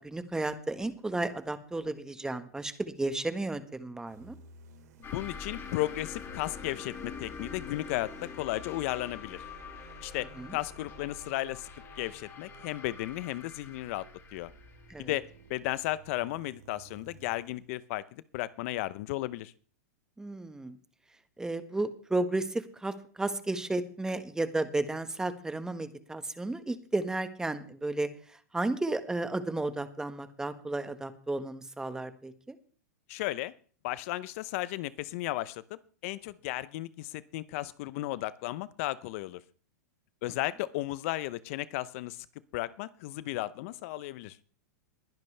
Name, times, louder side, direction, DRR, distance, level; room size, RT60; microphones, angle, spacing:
voice 1, 0.0-4.4 10.4-10.6 14.9-15.1 20.2-20.8 21.4-32.6, right 2 dB, 5° right, 10 dB, 1.4 m, -33 dB
sound 1, 4.1-17.7, right 4 dB, 75° right, 3.6 m, -55 dB
sound 2, 5.0-16.2, left 6 dB, 25° left, 2.6 m, -45 dB
voice 2, 5.1-9.4 10.0-11.7 12.0-14.5 15.0-19.5 33.1-33.5 33.8-39.4 40.2-42.3 42.5-44.4, left 17 dB, 55° left, 18 dB, 0.7 m, -35 dB
21.0 x 10.5 x 3.4 m, 0.43 s
hypercardioid pair, 125°, 9 cm